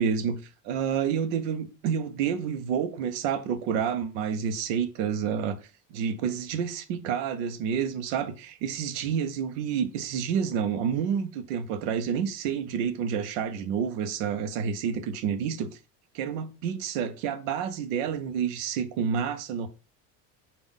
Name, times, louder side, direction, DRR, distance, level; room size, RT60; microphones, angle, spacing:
voice 1, 0.0-5.6 5.9-15.8 16.1-19.7, right 7 dB, 75° right, 0.8 m, -29 dB
5.3 x 2.5 x 3.6 m
supercardioid pair, 105°, 41 cm